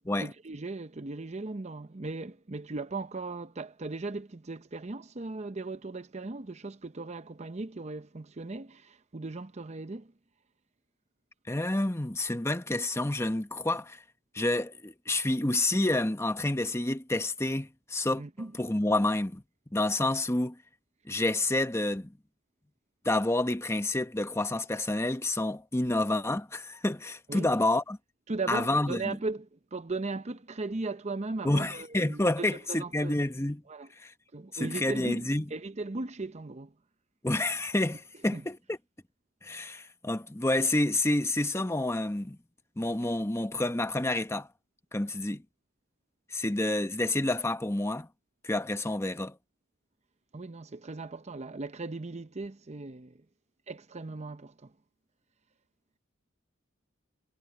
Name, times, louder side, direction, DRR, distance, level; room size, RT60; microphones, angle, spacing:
voice 1, 0.2-10.1 18.2-18.5 27.3-27.5 28.3-33.3 33.7-33.9 34.3-36.7 38.3-38.5 50.3-53.2 53.7-54.7, right 3 dB, 35° right, 0.7 m, -37 dB
voice 2, 11.5-14.0 14.3-18.2 18.6-19.4 19.7-20.6 21.1-22.1 23.0-28.0 28.5-29.2 31.4-33.6 34.0-34.1 34.5-35.5 37.2-38.8 39.4-42.4 42.8-44.5 44.9-45.4 46.3-48.1 48.4-49.3, left 2 dB, 15° left, 1.0 m, -29 dB
head